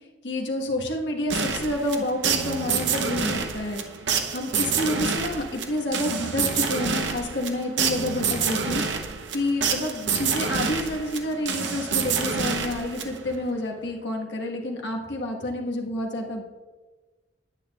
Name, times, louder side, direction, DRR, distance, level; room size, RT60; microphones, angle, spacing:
voice 1, 0.2-3.8 4.3-8.8 9.3-16.4, left 1 dB, 70° left, 1 dB, 1.4 m, -29 dB
sound 1, 1.3-13.4, right 6 dB, 85° right, 0.9 m, -27 dB
9.7 x 9.4 x 2.4 m, 1.2 s
head